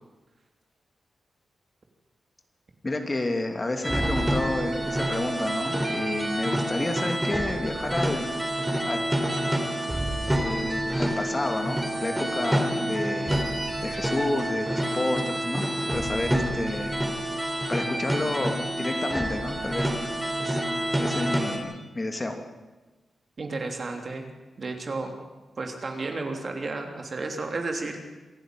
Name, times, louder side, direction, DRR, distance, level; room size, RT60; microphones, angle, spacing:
voice 1, 2.8-8.3 8.8-9.0 10.4-15.7 15.9-17.0 17.7-19.9 20.4-20.6 21.0-22.4, left 2 dB, 25° left, 5 dB, 2.7 m, -30 dB
sound 1, 3.8-21.6, right 1 dB, 10° right, 3.9 m, -28 dB
voice 2, 23.4-24.3 24.6-25.2 25.6-28.0, right 3 dB, 45° right, 4 dB, 3.4 m, -32 dB
26.5 x 11.5 x 9.3 m, 1.2 s
cardioid pair, 85°, 0 cm